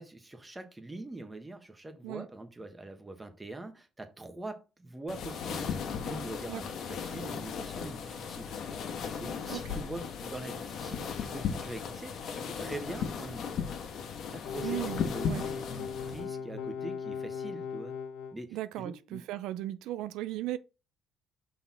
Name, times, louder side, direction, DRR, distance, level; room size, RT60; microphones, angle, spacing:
voice 1, 0.0-5.7 6.0-8.5 9.2-13.5 14.3-17.9 18.3-19.2, right 2 dB, 15° right, 1.2 m, -43 dB
sound 1, 5.1-16.3, left 6 dB, 60° left, 1.3 m, -36 dB
sound 2, 14.4-18.3, left 6 dB, 85° left, 1.0 m, -38 dB
voice 2, 14.6-15.4 18.5-20.6, right 15 dB, 85° right, 0.3 m, -37 dB
5.7 x 4.1 x 4.2 m
cardioid pair, 115°, 0 cm